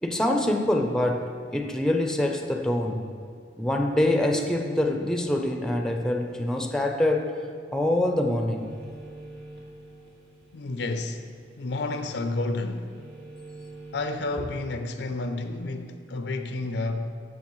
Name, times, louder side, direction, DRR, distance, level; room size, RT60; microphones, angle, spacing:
voice 1, 0.0-3.1 3.6-7.3 7.7-8.7, left 1 dB, 5° left, 0.6 m, -25 dB
sound 1, 8.5-14.4, right 1 dB, 70° right, 1.7 m, -46 dB
voice 2, 10.5-11.3 11.6-12.9 13.9-17.1, left 2 dB, 70° left, 0.5 m, -30 dB
14.5 x 6.1 x 3.1 m
head